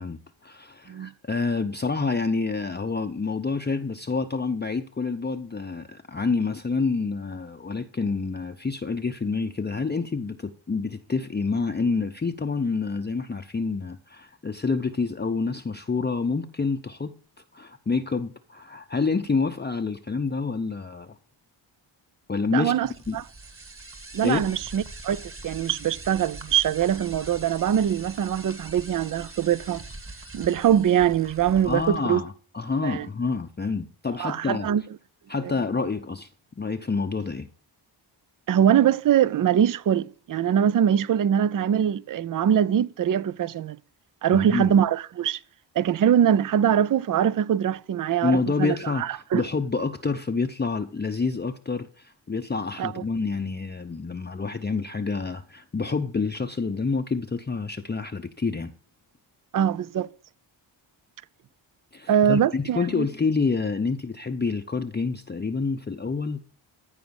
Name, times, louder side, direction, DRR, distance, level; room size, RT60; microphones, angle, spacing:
voice 1, 0.0-17.2 17.5-21.1 22.3-22.7 23.1-23.2 24.2-24.4 31.6-34.7 35.3-36.3 36.6-37.5 44.3-44.7 48.2-58.7 61.9-66.4, left 4 dB, 20° left, 0.7 m, -28 dB
voice 2, 22.5-23.2 24.1-29.8 30.3-32.2 32.8-33.1 34.2-34.8 38.5-43.8 44.2-45.4 45.8-49.4 52.8-52.9 59.5-60.1 62.1-63.1, right 9 dB, 45° right, 0.5 m, -23 dB
sound 1, 22.8-32.0, right 2 dB, 25° right, 1.9 m, -42 dB
15.0 x 5.0 x 6.9 m
cardioid pair, 85°, 48 cm